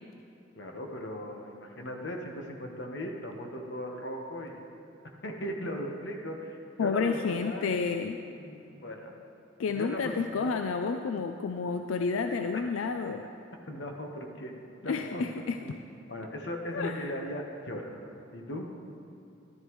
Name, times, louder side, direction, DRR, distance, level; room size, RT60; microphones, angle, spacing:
voice 1, 0.6-4.7 5.2-7.7 8.3-9.2 9.7-10.7 12.5-12.7 13.7-14.5 14.8-15.2 15.6-18.7, equal, 60° left, 1 dB, 1.2 m, -38 dB
voice 2, 6.8-8.2 9.6-13.2 14.9-15.6 16.7-17.0, left 5 dB, 90° left, 6 dB, 0.4 m, -30 dB
13.0 x 11.5 x 3.2 m, 2.8 s
head